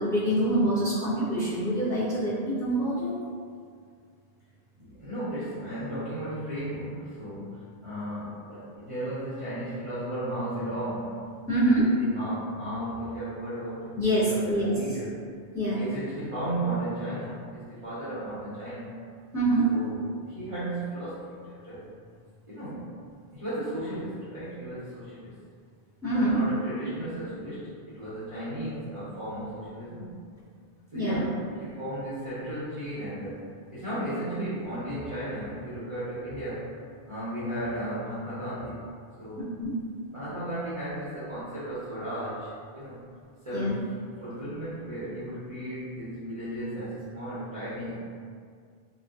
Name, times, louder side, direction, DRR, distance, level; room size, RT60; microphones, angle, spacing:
voice 1, 0.0-3.1 11.5-11.9 14.0-14.7 15.5-15.8 19.3-19.7 26.0-26.4 30.9-31.2 39.6-39.8 43.5-43.8, right 1 dB, 5° left, -11 dB, 0.6 m, -25 dB
voice 2, 4.8-11.3 11.6-15.2 15.7-18.9 19.6-21.9 22.5-22.9 23.3-25.3 26.1-30.2 30.9-36.7 37.1-38.8 39.2-39.4 40.1-43.0 43.4-48.0, right 1 dB, 40° right, -13 dB, 0.5 m, -35 dB
2.5 x 2.1 x 2.3 m, 2.1 s
omnidirectional pair, 1.1 m